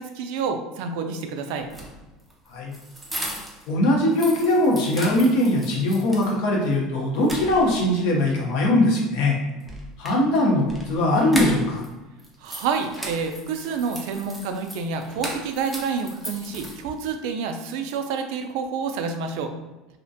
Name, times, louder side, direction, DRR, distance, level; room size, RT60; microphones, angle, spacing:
voice 1, 0.0-1.7 12.4-19.5, right 5 dB, 70° right, 6 dB, 0.3 m, -28 dB
sound 1, 1.6-3.7 4.0-6.3 6.7-6.8 7.2-8.0 9.6-11.9 12.2-17.1, right 1 dB, ahead, 0.4 m, -37 dB
voice 2, 3.7-9.4 10.0-11.8, left 1 dB, 65° left, -1 dB, 0.7 m, -21 dB
2.4 x 2.1 x 2.6 m, 1.1 s
cardioid pair, 155°, 0 cm